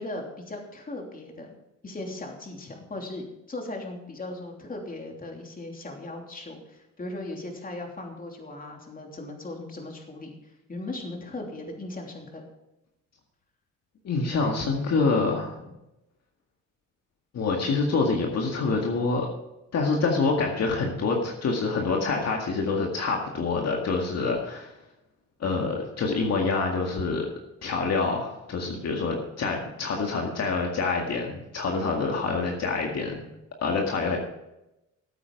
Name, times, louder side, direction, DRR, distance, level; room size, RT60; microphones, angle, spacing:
voice 1, 0.0-1.6 1.8-12.4 15.6-15.7, left 2 dB, 30° left, 1 dB, 3.1 m, -38 dB
voice 2, 14.0-15.6 17.3-19.3 19.7-24.7 25.4-27.3 27.6-33.3 33.6-34.2, left 4 dB, 55° left, 0 dB, 2.0 m, -26 dB
14.5 x 8.5 x 4.7 m, 0.91 s
cardioid pair, 90°, 30 cm